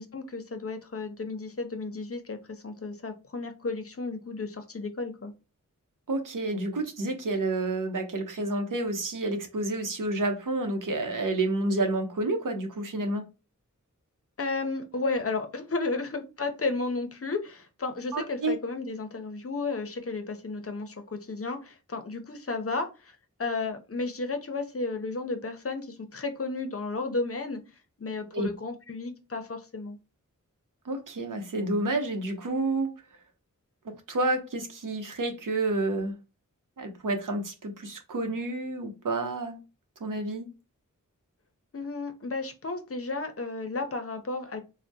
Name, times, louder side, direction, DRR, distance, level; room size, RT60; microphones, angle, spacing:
voice 1, 0.0-5.3 14.4-27.6 28.0-30.0 41.7-44.6, left 3 dB, 45° left, 0.6 m, -33 dB
voice 2, 6.1-13.2 18.1-18.5 28.3-28.5 30.8-32.9 33.8-36.1 36.8-39.6 40.0-40.5, right 2 dB, 80° right, 0.7 m, -29 dB
3.4 x 2.1 x 2.6 m
wide cardioid pair, 65°, 32 cm